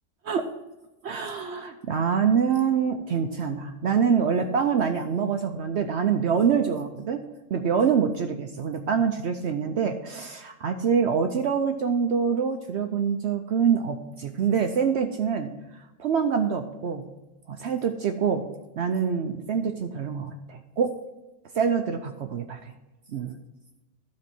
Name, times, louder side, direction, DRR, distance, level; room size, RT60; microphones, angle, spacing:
voice 1, 1.0-7.2 7.5-15.5 16.0-17.1 17.5-18.5 18.8-20.9 21.5-22.6 23.1-23.4, right 6 dB, 65° right, 5 dB, 0.8 m, -25 dB
12.0 x 4.2 x 5.9 m, 1.0 s
omnidirectional pair, 1.4 m